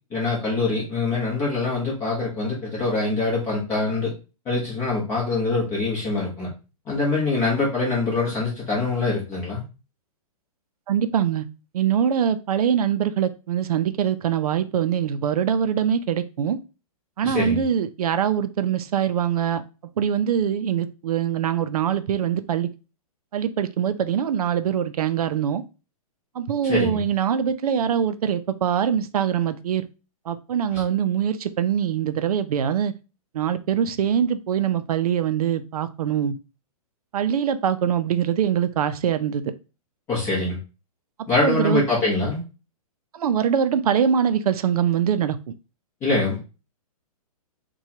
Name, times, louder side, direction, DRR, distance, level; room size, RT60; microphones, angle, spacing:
voice 1, 0.1-4.1 4.4-6.5 6.9-9.6 17.2-17.6 26.6-27.0 30.7-30.8 40.1-40.6 41.3-42.4 46.0-46.4, left 3 dB, 15° left, 0.9 m, -24 dB
voice 2, 10.9-11.4 11.7-16.6 17.2-19.6 20.0-22.7 23.3-25.6 26.4-29.9 30.3-32.9 33.3-36.3 37.1-39.4 41.4-41.8 43.2-45.4, right 8 dB, 80° right, 0.4 m, -23 dB
4.3 x 2.3 x 2.7 m
hypercardioid pair, 175°, 19 cm